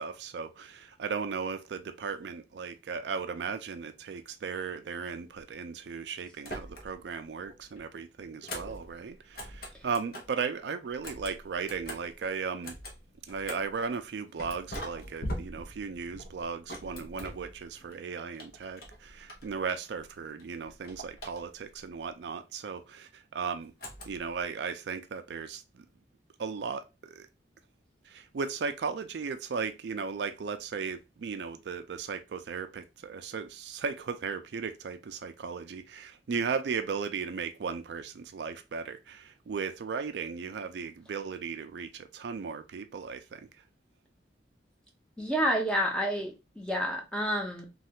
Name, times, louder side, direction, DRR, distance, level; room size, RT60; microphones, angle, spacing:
voice 1, 0.0-12.8 13.3-23.7 24.1-25.9 26.4-27.3 28.0-43.6, right 5 dB, 75° right, 0.4 m, -36 dB
sound 1, 6.4-7.1 7.4-10.4 10.9-13.8 14.4-17.9 18.3-20.1 20.4-21.8 23.8-24.4, equal, 55° left, 0.8 m, -43 dB
voice 2, 45.2-47.7, equal, 5° left, 0.7 m, -29 dB
3.2 x 2.3 x 2.8 m
head